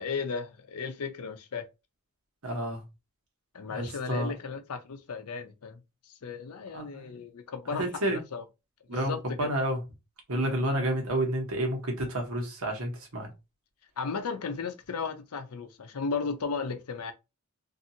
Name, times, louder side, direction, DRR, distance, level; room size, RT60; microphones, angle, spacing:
voice 1, 0.0-1.7 3.5-8.4 8.9-9.5 14.0-17.1, left 5 dB, 85° left, 0.6 m, -35 dB
voice 2, 2.4-2.8 3.7-4.3 6.7-7.2 7.7-8.2 8.9-9.8 10.3-13.3, right 1 dB, 65° right, 1.1 m, -30 dB
2.8 x 2.6 x 2.7 m
head